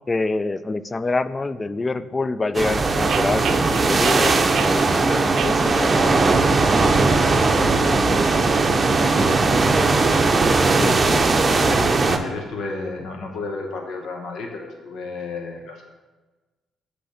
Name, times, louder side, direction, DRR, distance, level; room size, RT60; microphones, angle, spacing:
voice 1, 0.1-6.3 10.8-11.3, left 3 dB, 25° left, 14 dB, 0.3 m, -26 dB
sound 1, 2.5-12.2, right 3 dB, 35° right, 0.6 m, -18 dB
sound 2, 3.1-4.8 5.4-6.4 6.6-7.2 7.7-9.5 10.0-12.2, right 9 dB, 70° right, 0.3 m, -34 dB
voice 2, 11.5-15.8, left 3 dB, 75° left, 2 dB, 0.8 m, -34 dB
7.9 x 3.3 x 6.4 m, 1.2 s
cardioid pair, 90°, 0 cm